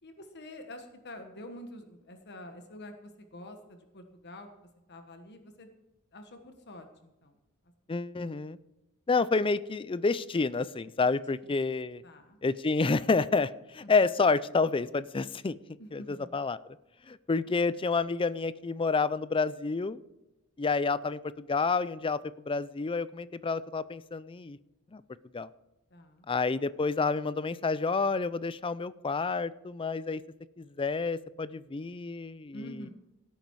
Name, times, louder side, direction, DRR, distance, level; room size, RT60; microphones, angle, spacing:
voice 1, 0.0-4.5 4.9-5.7 6.1-7.4 11.1-11.2 11.4-11.7 12.0-12.4 13.8-13.9 15.8-16.3 25.9-26.3 32.5-32.9, left 1 dB, 50° left, 6 dB, 1.4 m, -47 dB
voice 2, 7.9-8.6 9.1-12.0 12.4-15.6 15.9-16.6 17.1-20.0 20.6-22.2 22.5-24.6 24.9-25.0 25.3-25.5 26.3-30.2 30.6-32.8, left 4 dB, 25° left, 17 dB, 0.4 m, -29 dB
17.0 x 9.1 x 4.7 m, 1.0 s
head